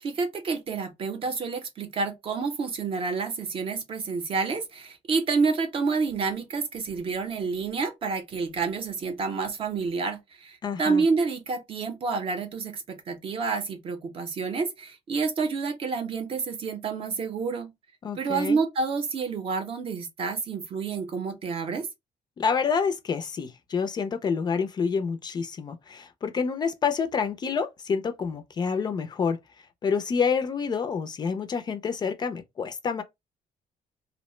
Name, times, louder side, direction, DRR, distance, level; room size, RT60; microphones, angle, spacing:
voice 1, 0.0-17.7 18.2-21.9, right 4 dB, 40° right, 0.6 m, -29 dB
voice 2, 10.6-11.0 18.0-18.6 22.4-29.4 29.8-33.0, left 6 dB, 30° left, 0.4 m, -28 dB
2.7 x 2.0 x 3.0 m
cardioid pair, 150°, 14 cm